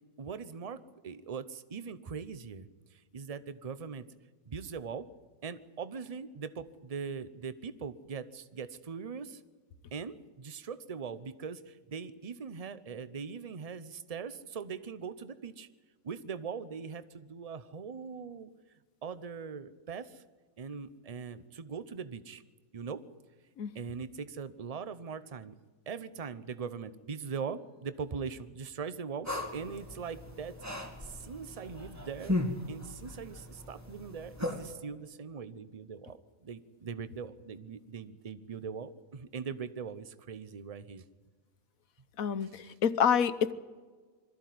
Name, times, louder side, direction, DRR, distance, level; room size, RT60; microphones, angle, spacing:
voice 1, 0.2-4.1 4.5-5.1 5.4-9.4 9.9-15.7 16.0-18.5 19.0-20.2 20.6-22.4 22.7-23.0 23.7-25.5 25.9-32.4 32.7-41.0 42.4-42.7, right 6 dB, 30° right, 14 dB, 0.8 m, -41 dB
sound 1, 29.3-34.7, left 1 dB, 10° right, 2.3 m, -37 dB
voice 2, 42.2-43.5, left 7 dB, 80° left, 13 dB, 1.3 m, -27 dB
22.5 x 14.0 x 9.3 m, 1.4 s
omnidirectional pair, 1.4 m